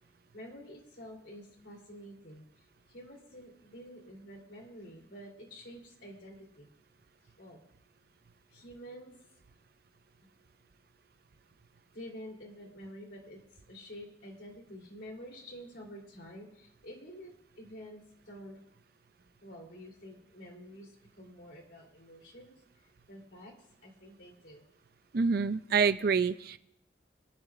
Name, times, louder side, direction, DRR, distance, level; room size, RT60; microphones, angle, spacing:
voice 1, 0.3-2.4 2.9-6.7 7.4-7.6 8.5-9.1 11.9-13.4 13.7-18.6 19.4-20.9 21.2-22.6 23.1-23.5 23.8-24.6, equal, 80° left, 0 dB, 3.3 m, -48 dB
voice 2, 25.1-26.6, right 5 dB, 60° right, 12 dB, 0.5 m, -27 dB
25.0 x 11.5 x 2.5 m, 0.76 s
head